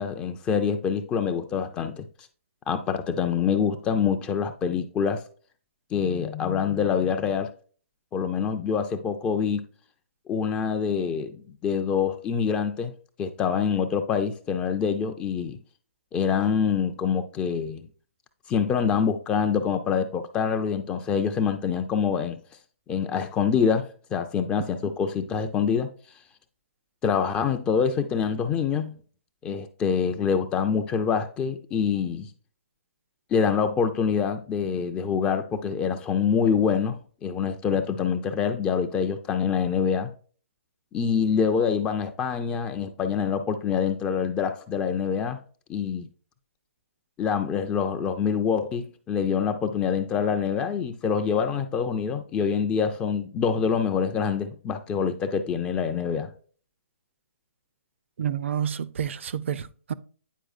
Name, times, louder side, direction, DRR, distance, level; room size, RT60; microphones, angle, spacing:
voice 1, 0.0-2.1 2.7-5.2 5.9-7.5 8.1-9.7 10.3-11.4 11.6-12.9 13.2-15.6 16.1-17.9 18.5-22.4 22.9-25.9 27.0-29.0 29.4-32.3 33.3-40.1 40.9-45.4 45.7-46.1 47.2-56.3, left 6 dB, 15° left, 0.4 m, -25 dB
voice 2, 58.2-59.9, right 8 dB, 60° right, 0.5 m, -29 dB
9.1 x 4.7 x 2.4 m
hypercardioid pair, 150°, 8 cm